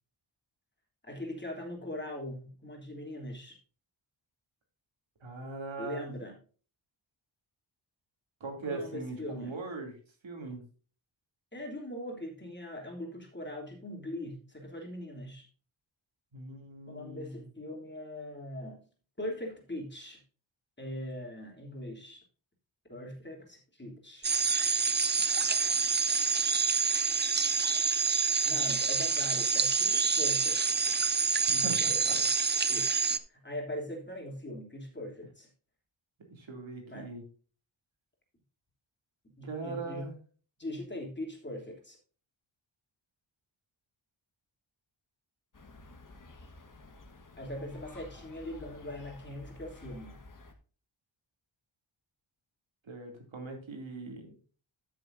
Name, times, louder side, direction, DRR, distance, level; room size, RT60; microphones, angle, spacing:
voice 1, 1.0-3.6 5.8-6.3 8.7-9.5 11.5-15.5 16.9-18.8 19.2-20.2 20.8-22.2 22.9-24.3 28.4-30.9 31.5-32.2 32.7-33.0 33.3-35.5 36.9-37.1 39.4-40.1 40.6-42.0 47.4-50.2, left 1 dB, 20° left, -1 dB, 3.1 m, -41 dB
voice 2, 5.2-6.1 8.4-10.0 10.2-10.7 16.3-17.5 31.6-32.7 36.3-37.2 39.4-40.2 52.8-54.4, right 3 dB, 70° right, 2 dB, 2.8 m, -40 dB
sound 1, 24.2-33.2, right 5 dB, 25° right, 0.5 m, -27 dB
sound 2, 45.5-50.5, left 2 dB, 40° left, 1.5 m, -51 dB
13.5 x 6.6 x 2.6 m, 0.39 s
wide cardioid pair, 95°, 48 cm